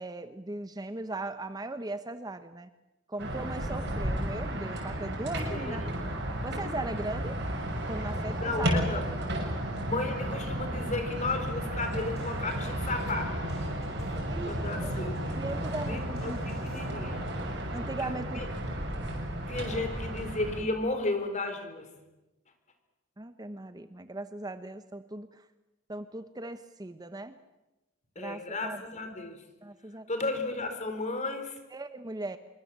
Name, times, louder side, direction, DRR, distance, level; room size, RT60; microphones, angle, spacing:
voice 1, 0.0-2.7 3.1-5.9 6.4-7.4 7.9-8.8 14.3-14.9 15.3-16.4 17.7-18.4 23.2-25.5 25.9-27.4 28.2-29.1 29.6-30.1 31.7-32.4, right 2 dB, 20° right, 10 dB, 0.9 m, -38 dB
sound 1, 3.2-20.6, right 1 dB, 60° right, 6.5 m, -33 dB
voice 2, 5.5-5.8 8.3-9.4 9.8-13.5 14.5-15.2 15.8-17.3 18.0-18.5 19.5-21.9 28.2-29.4 30.1-31.6, left 2 dB, 35° left, 7 dB, 4.1 m, -34 dB
sound 2, 11.5-16.8, equal, 55° left, 7.6 m, -51 dB
25.5 x 23.5 x 7.5 m, 1.0 s
head